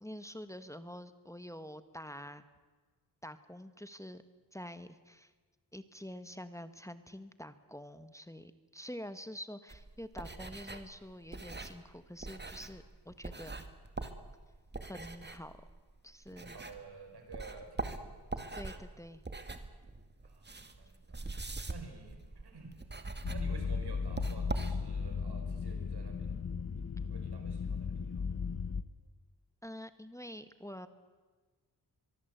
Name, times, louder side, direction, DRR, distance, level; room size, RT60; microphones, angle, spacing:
voice 1, 0.0-2.4 3.2-4.2 4.5-5.3 5.7-13.7 14.8-15.6 16.0-16.6 18.5-19.2 29.6-30.9, equal, 10° left, 11 dB, 1.4 m, -47 dB
sound 1, 9.7-17.0 17.3-25.2, right 2 dB, 25° right, 2.2 m, -43 dB
voice 2, 16.4-18.2 20.2-21.2 21.7-22.8 23.3-26.4 26.7-28.5, right 4 dB, 85° right, 4 dB, 5.9 m, -51 dB
sound 2, 23.2-28.8, left 5 dB, 45° left, 1.1 m, -36 dB
23.5 x 23.0 x 8.1 m, 1.4 s
wide cardioid pair, 85°, 39 cm